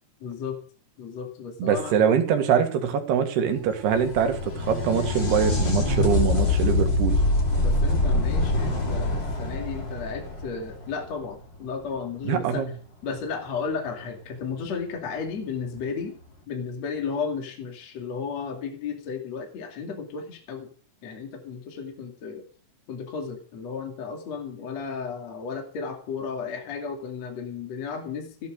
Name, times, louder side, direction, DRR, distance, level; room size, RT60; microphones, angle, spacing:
voice 1, 0.2-0.6 1.0-1.9 7.6-12.6 13.0-16.1 16.5-20.7 21.0-22.4 22.9-28.5, left 5 dB, 45° left, 2 dB, 3.3 m, -34 dB
voice 2, 1.6-7.2 12.3-12.7, right 7 dB, 70° right, 6 dB, 3.7 m, -23 dB
sound 1, 3.7-11.2 14.6-14.7 15.8-15.9, left 2 dB, 30° left, 3.4 m, -24 dB
16.0 x 10.5 x 6.4 m, 0.43 s
omnidirectional pair, 4.8 m